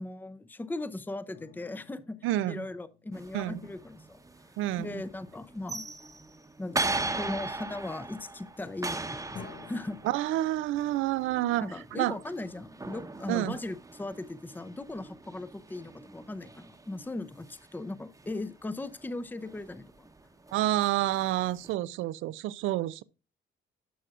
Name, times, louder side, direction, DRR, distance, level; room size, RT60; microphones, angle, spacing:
voice 1, 0.0-2.2 2.5-4.2 4.8-5.8 6.6-10.0 11.6-20.1, left 2 dB, 10° left, 0.6 m, -38 dB
sound 1, 1.3-4.4 9.4-13.0, left 6 dB, 60° left, 1.1 m, -53 dB
voice 2, 2.2-2.6 3.3-3.6 4.6-5.0 10.0-12.2 13.3-13.6 20.5-23.0, right 14 dB, 90° right, 0.4 m, -29 dB
sound 2, 3.1-21.7, right 2 dB, 15° right, 0.9 m, -40 dB
11.0 x 6.1 x 2.4 m
cardioid pair, 90°, 20 cm